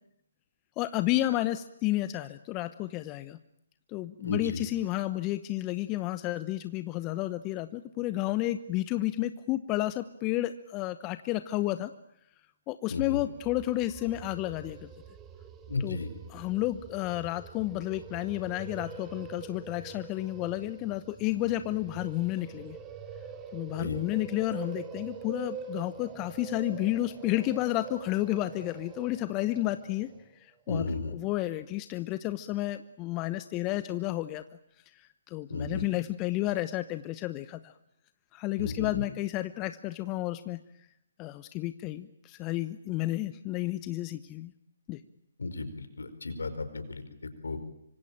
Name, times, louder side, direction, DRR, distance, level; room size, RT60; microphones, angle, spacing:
voice 1, 0.8-3.4 3.9-11.9 12.7-14.9 15.8-16.0 16.3-22.8 23.5-30.1 30.4-34.4 35.0-37.7 38.3-40.6 41.2-44.5 44.9-45.0, left 16 dB, 25° left, 12 dB, 1.0 m, -31 dB
voice 2, 4.2-4.6 12.9-13.2 15.7-16.1 23.8-24.0 30.7-31.1 35.5-35.8 38.6-39.0 45.4-45.7 46.0-47.0 47.4-47.6, left 3 dB, 75° left, 10 dB, 5.0 m, -33 dB
sound 1, 13.3-30.3, right 7 dB, 20° right, 2.6 m, -45 dB
25.5 x 25.5 x 9.0 m, 0.75 s
figure-of-eight pair, 135°, 0 cm